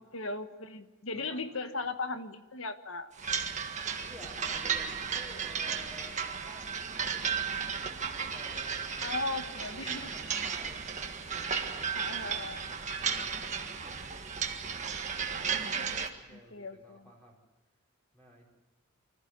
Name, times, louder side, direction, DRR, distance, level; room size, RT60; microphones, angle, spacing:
voice 1, 0.0-3.1 9.0-10.1 11.9-12.7 15.3-16.0 16.3-17.1, left 3 dB, 65° left, 8 dB, 1.5 m, -38 dB
sound 1, 3.2-16.1, right 6 dB, 30° right, 1.7 m, -34 dB
voice 2, 4.0-15.7 16.0-17.4 18.1-18.5, equal, 5° left, -3 dB, 4.9 m, -54 dB
25.0 x 14.5 x 9.6 m, 1.2 s
head